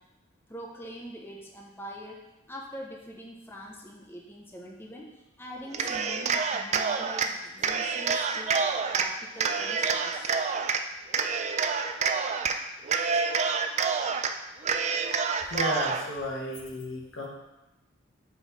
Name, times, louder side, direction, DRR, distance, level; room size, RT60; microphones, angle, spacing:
voice 1, 0.5-2.2 2.5-8.6 8.9-10.3, equal, 10° left, -2 dB, 0.6 m, -43 dB
Cheering, 5.7-7.3 7.6-9.1 9.4-10.8 11.1-12.6 12.8-14.3 14.6-16.1, right 5 dB, 35° right, 0.4 m, -27 dB
voice 2, 15.5-17.3, left 1 dB, 75° left, -3 dB, 1.5 m, -33 dB
5.4 x 5.1 x 4.1 m, 1.0 s
head